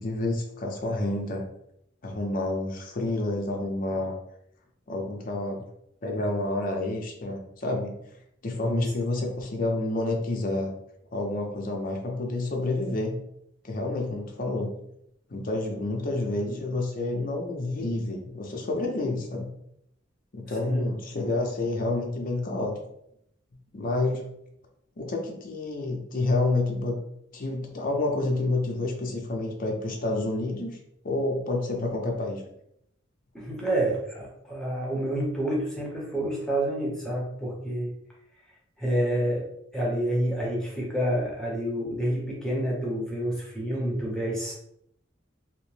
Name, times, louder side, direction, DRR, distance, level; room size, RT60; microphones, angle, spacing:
voice 1, 0.0-1.4 2.0-4.1 4.9-5.6 6.0-8.0 8.4-10.7 11.1-13.2 13.6-14.8 15.3-19.5 20.3-22.7 23.7-24.3 25.0-27.0 27.3-30.8 31.0-32.4, left 2 dB, 45° left, 1 dB, 0.5 m, -29 dB
voice 2, 20.5-20.8 33.3-37.9 38.8-39.4 39.7-44.6, right 1 dB, 5° left, -4 dB, 0.7 m, -28 dB
2.8 x 2.1 x 3.1 m, 0.75 s
head